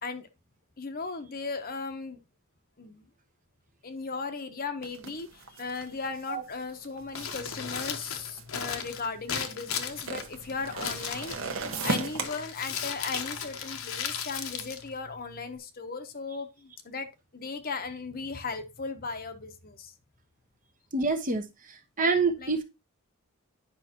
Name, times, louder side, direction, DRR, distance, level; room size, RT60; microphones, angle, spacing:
voice 1, 0.8-2.2 2.8-3.1 3.8-17.1 17.3-19.9 22.4-22.5, left 4 dB, 45° left, 0.9 m, -37 dB
sound 1, 4.8-9.3 9.9-12.2, right 3 dB, 65° right, 1.2 m, -36 dB
Crumpling crinkling, 7.0-15.6, left 7 dB, 70° left, 1.1 m, -37 dB
voice 2, 20.9-21.5 22.0-22.6, right 4 dB, 40° right, 1.0 m, -26 dB
10.0 x 5.5 x 2.9 m
head